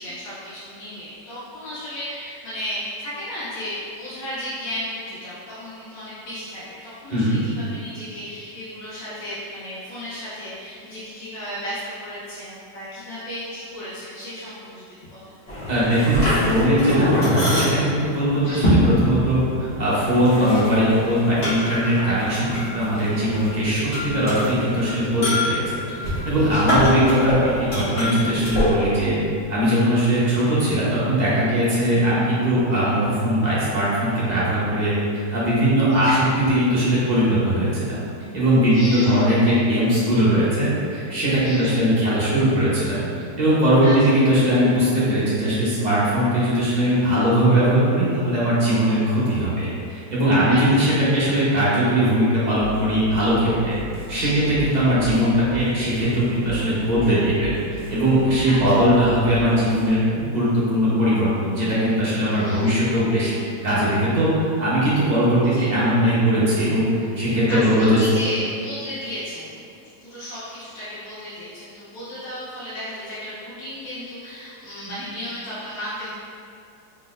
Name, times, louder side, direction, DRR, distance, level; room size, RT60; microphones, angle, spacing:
voice 1, 0.0-14.8 15.1-15.4 18.4-18.7 26.3-26.7 35.9-36.2 38.7-39.2 41.4-41.8 43.8-44.1 50.4-50.8 54.1-54.5 58.4-58.6 62.2-62.7 65.5-65.7 67.5-69.6 70.0-76.1, equal, 80° left, -11 dB, 1.6 m, -34 dB
voice 2, 7.1-7.4 15.7-19.4 19.8-29.2 29.5-34.9 35.3-38.0 38.3-43.0 43.4-63.3 63.6-66.9 67.2-68.0 74.9-75.0, equal, 35° right, -9 dB, 0.8 m, -20 dB
sound 1, 15.5-28.6, left 1 dB, 35° left, 1.5 m, -25 dB
sound 2, 52.6-59.9, right 3 dB, 65° right, 1.1 m, -36 dB
4.0 x 3.8 x 2.4 m, 2.6 s
omnidirectional pair, 1.9 m